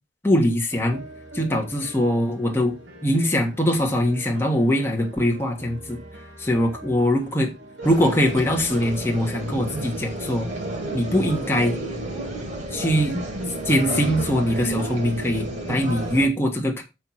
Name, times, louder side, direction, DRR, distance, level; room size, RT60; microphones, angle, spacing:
voice 1, 0.2-1.0 1.3-2.7 3.0-6.0 6.4-7.5 7.8-10.5 10.9-11.8 12.7-13.2 13.6-16.8, equal, 10° left, 1.5 m, -22 dB
sound 1, 0.7-15.5, right 1 dB, 70° right, 2.4 m, -42 dB
sound 2, 7.8-16.3, right 1 dB, 40° right, 2.2 m, -31 dB
7.9 x 4.6 x 5.7 m
head